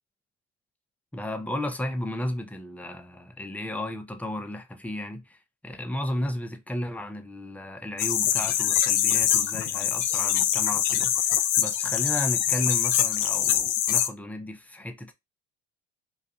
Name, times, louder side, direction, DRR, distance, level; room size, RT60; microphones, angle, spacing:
voice 1, 1.1-5.4 5.6-15.1, left 1 dB, 5° left, 0.5 m, -34 dB
sound 1, 8.0-14.1, left 10 dB, 70° left, 0.5 m, -24 dB
2.4 x 2.3 x 2.7 m
supercardioid pair, 70°, 33 cm